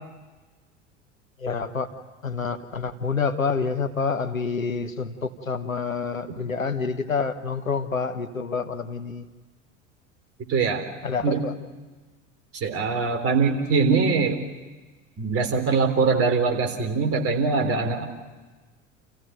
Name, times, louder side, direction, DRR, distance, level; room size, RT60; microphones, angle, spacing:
voice 1, 1.4-1.9 2.2-9.2 11.0-11.5, left 5 dB, 85° left, 8 dB, 1.2 m, -28 dB
voice 2, 10.5-10.8 11.2-11.4 12.6-14.4 15.2-18.0, right 4 dB, 35° right, 4 dB, 3.8 m, -22 dB
29.0 x 15.5 x 9.3 m, 1.3 s
figure-of-eight pair, 70°, 39 cm